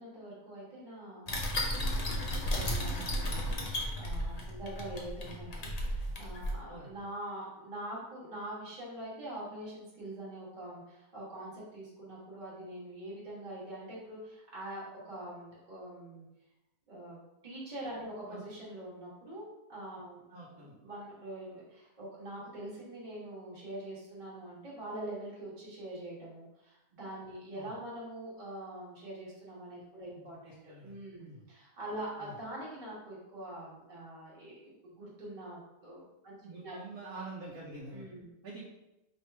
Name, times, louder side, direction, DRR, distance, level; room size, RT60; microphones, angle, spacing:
voice 1, 0.0-1.3 2.3-16.3 16.9-20.2 20.5-36.8 37.9-38.3, right 1 dB, 30° right, -7 dB, 1.2 m, -44 dB
sound 1, 1.3-6.5, equal, 55° left, 0.4 m, -34 dB
voice 2, 20.3-20.7 27.5-27.7 30.1-31.4 32.2-32.3 36.4-38.1 38.4-38.7, right 2 dB, 70° right, -6 dB, 1.2 m, -47 dB
3.2 x 2.9 x 4.4 m, 0.94 s
omnidirectional pair, 1.6 m